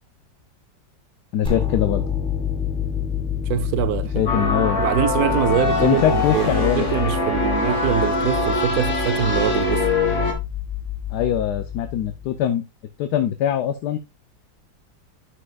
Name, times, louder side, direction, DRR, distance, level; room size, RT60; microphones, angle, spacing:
voice 1, 1.3-2.0 4.1-4.8 5.8-6.9 11.1-12.6 13.0-14.0, left 10 dB, 75° left, 1.2 m, -22 dB
sound 1, 1.5-12.4, left 8 dB, 5° left, 1.2 m, -29 dB
voice 2, 3.5-4.2 4.8-9.9, right 10 dB, 70° right, 1.1 m, -24 dB
sound 2, 4.3-10.3, left 2 dB, 45° left, 1.7 m, -23 dB
9.4 x 6.6 x 2.3 m
omnidirectional pair, 1.8 m